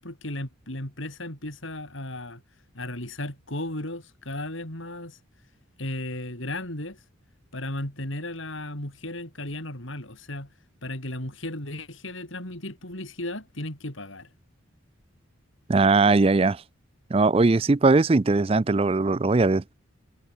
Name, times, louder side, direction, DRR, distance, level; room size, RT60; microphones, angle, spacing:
voice 1, 0.0-2.4 2.7-5.2 5.8-7.0 7.5-10.5 10.8-14.3, left 1 dB, 70° left, 6.5 m, -35 dB
voice 2, 15.7-16.6 17.1-19.7, right 3 dB, 30° right, 0.4 m, -20 dB
head